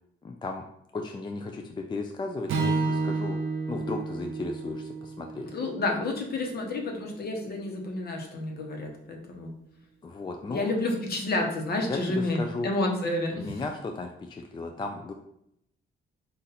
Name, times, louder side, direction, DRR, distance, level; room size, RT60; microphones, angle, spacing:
voice 1, 0.2-0.6 0.9-3.4 3.7-5.5 10.0-10.7 11.9-12.7 13.4-15.1, left 3 dB, 25° left, 4 dB, 0.4 m, -35 dB
Strum, 2.5-6.8, right 3 dB, 85° right, 0.7 m, -31 dB
voice 2, 5.5-9.5 10.5-13.6, left 2 dB, 55° left, 2 dB, 1.0 m, -30 dB
4.0 x 2.5 x 4.1 m, 0.76 s
cardioid pair, 90°, 20 cm